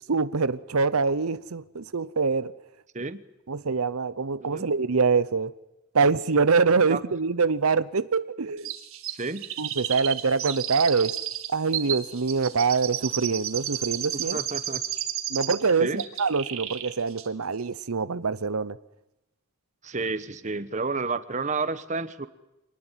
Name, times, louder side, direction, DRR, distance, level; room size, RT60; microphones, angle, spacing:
voice 1, 0.1-2.5 3.5-5.5 5.9-8.7 9.6-11.1 11.5-14.4 15.3-15.9 16.2-18.8, right 4 dB, 90° right, 0.8 m, -24 dB
Chirp tweet, 8.6-15.7 16.0-16.9 17.2-17.3, right 11 dB, 75° right, 2.2 m, -32 dB
voice 2, 9.1-9.4 14.3-14.8 15.8-16.0 19.8-22.3, right 3 dB, 35° right, 1.1 m, -30 dB
25.0 x 19.5 x 9.1 m
head